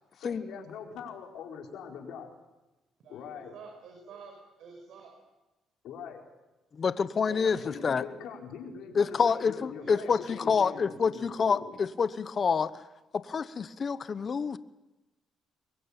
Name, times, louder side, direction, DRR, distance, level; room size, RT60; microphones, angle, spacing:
voice 1, 0.1-2.3 3.1-3.6 5.8-6.2 7.3-11.7, left 6 dB, 85° left, 2 dB, 4.7 m, -42 dB
voice 2, 3.0-5.1 7.2-7.8 9.8-10.1, right 5 dB, 75° right, 3 dB, 5.7 m, -48 dB
voice 3, 6.8-7.6 7.8-8.0 8.9-11.6 12.0-12.7 13.3-14.6, left 6 dB, 45° left, 14 dB, 1.0 m, -27 dB
23.5 x 21.5 x 8.9 m, 1.1 s
cardioid pair, 90°, 0 cm